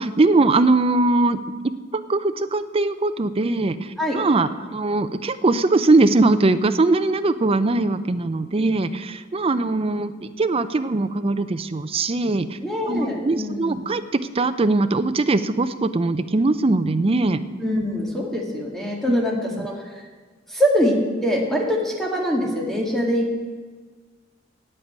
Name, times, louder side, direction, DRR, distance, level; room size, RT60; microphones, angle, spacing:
voice 1, 0.0-12.6 12.9-17.4 19.1-19.4, right 2 dB, 30° right, 11 dB, 0.5 m, -21 dB
voice 2, 12.6-13.8 17.6-20.0 20.5-23.4, equal, ahead, -1 dB, 1.9 m, -23 dB
8.8 x 8.8 x 8.2 m, 1.5 s
head